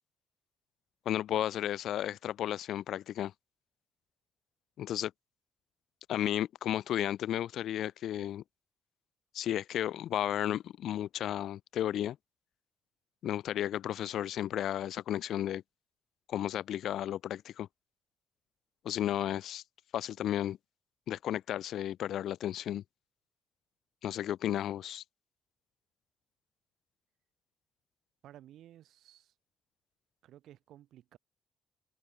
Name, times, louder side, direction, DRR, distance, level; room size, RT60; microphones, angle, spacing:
voice 1, 1.1-3.3 4.8-5.1 6.1-8.4 9.3-12.2 13.2-15.6 16.3-17.7 18.8-19.6 19.9-20.6 21.1-22.8 24.0-25.0, left 11 dB, 75° left, 0.3 m, -33 dB
voice 2, 28.2-29.3 30.2-31.2, right 12 dB, 80° right, 3.9 m, -55 dB
open air
cardioid pair, 90°, 0 cm